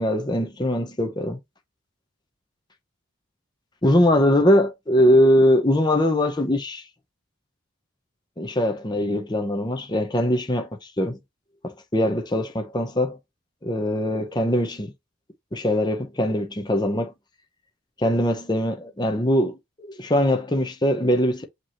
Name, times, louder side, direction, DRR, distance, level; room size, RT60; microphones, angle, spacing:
voice 1, 0.0-1.4 3.8-6.8 8.4-10.7 11.0-11.2 11.6-13.2 13.6-14.9 15.5-17.1 18.0-21.4, left 1 dB, 20° left, 0.7 m, -21 dB
5.3 x 3.0 x 2.9 m
head